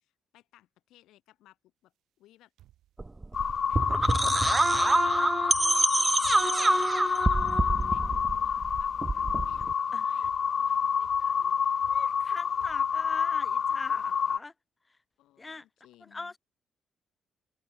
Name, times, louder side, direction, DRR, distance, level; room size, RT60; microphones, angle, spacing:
voice 1, 0.0-2.5 3.7-6.9 7.9-11.6 15.2-16.3, left 15 dB, 90° left, 4.1 m, -60 dB
sound 1, 2.6-3.0 3.3-4.5 4.8-6.7 7.2-7.6 7.9-8.3 8.7-9.1 9.4-9.9 10.2-10.7 11.0-11.3 11.8-12.3 12.6-13.0 13.7-13.8 14.0-14.1, right 13 dB, 80° right, 2.7 m, -55 dB
sound 2, 3.0-9.7, right 2 dB, 20° right, 0.5 m, -26 dB
sound 3, 3.3-14.4, left 7 dB, 50° left, 0.4 m, -28 dB
voice 2, 11.8-14.5 14.9-15.0 15.4-15.6 16.0-16.4, left 3 dB, 20° left, 2.1 m, -42 dB
open air
cardioid pair, 90°, 0 cm